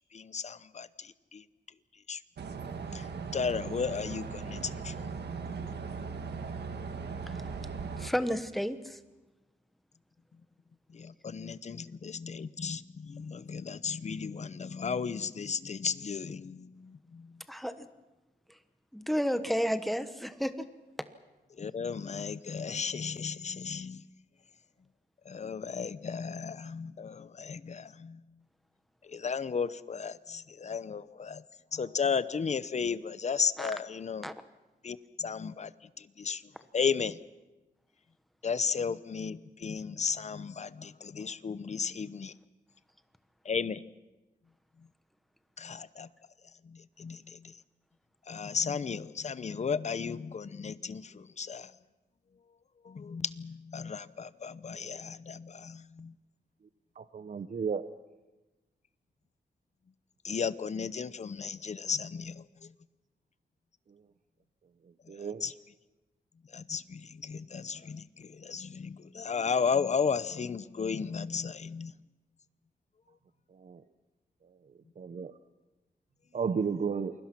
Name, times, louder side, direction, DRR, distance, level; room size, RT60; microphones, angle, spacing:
voice 1, 0.1-1.4 2.1-2.2 2.9-3.1 3.3-5.1 10.9-17.4 21.6-24.0 25.3-28.2 29.0-31.4 31.7-34.3 34.8-35.7 36.0-36.4 36.7-37.2 38.4-42.3 43.4-43.8 45.6-46.1 46.6-47.6 48.3-51.7 52.8-56.1 60.2-62.7 65.1-65.5 66.5-71.9, left 6 dB, 40° left, 16 dB, 0.7 m, -34 dB
sound 1, 2.4-8.1, right 5 dB, 75° right, 1.8 m, -38 dB
voice 2, 8.0-9.0 17.5-17.9 18.5-18.6 18.9-20.7 33.6-33.7 34.2-34.3, equal, ahead, 10 dB, 1.1 m, -32 dB
voice 3, 57.0-57.9 65.1-65.4 73.5-73.8 75.0-75.3 76.3-77.1, right 6 dB, 50° right, 12 dB, 0.8 m, -33 dB
28.5 x 22.0 x 6.0 m, 1.1 s
wide cardioid pair, 140°, 17 cm